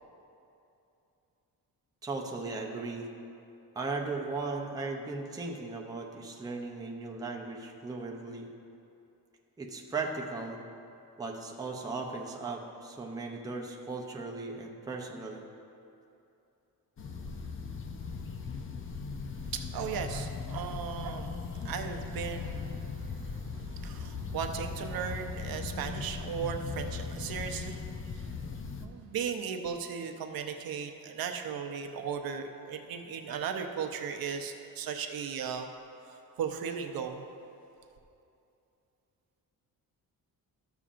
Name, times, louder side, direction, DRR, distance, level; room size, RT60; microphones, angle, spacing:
voice 1, 2.0-3.1 3.7-8.5 9.6-10.6 11.2-15.4, right 3 dB, 10° right, 0 dB, 0.5 m, -37 dB
sound 1, 17.0-28.9, left 4 dB, 35° left, 0.5 m, -38 dB
voice 2, 19.5-28.2 28.8-35.7 36.1-37.2, right 7 dB, 70° right, 5 dB, 0.7 m, -37 dB
13.5 x 7.0 x 2.5 m, 2.7 s
wide cardioid pair, 175°, 36 cm